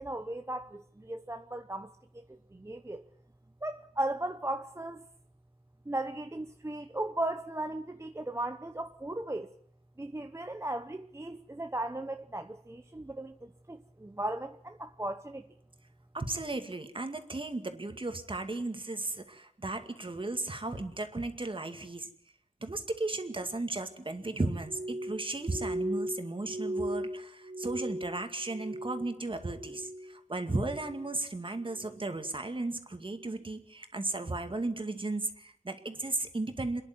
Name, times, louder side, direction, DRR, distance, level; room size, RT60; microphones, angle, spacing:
voice 1, 0.0-3.1 3.6-5.0 5.9-9.5 10.0-15.5, right 1 dB, 20° right, 0.9 m, -37 dB
voice 2, 16.1-22.1 22.6-36.8, right 2 dB, 40° right, 2.2 m, -35 dB
Glass, 24.6-29.2 29.5-30.1 30.5-31.1 31.7-31.9, right 1 dB, 85° right, 2.9 m, -37 dB
27.5 x 10.5 x 9.4 m
wide cardioid pair, 60°, 13 cm